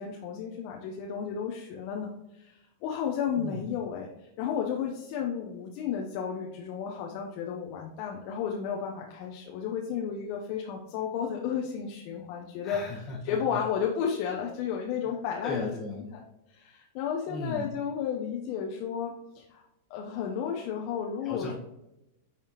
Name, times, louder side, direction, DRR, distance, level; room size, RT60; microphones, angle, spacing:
voice 1, 0.0-2.1 2.4-12.8 13.2-15.7 16.1-16.2 16.5-19.6 19.9-21.5, left 7 dB, 50° left, 0 dB, 0.9 m, -33 dB
voice 2, 3.4-3.8 12.6-13.6 15.0-15.1 15.4-16.1 17.3-17.8 21.2-21.5, left 3 dB, 25° left, -4 dB, 1.4 m, -37 dB
10.0 x 3.4 x 3.1 m, 0.90 s
hypercardioid pair, 100°, 0 cm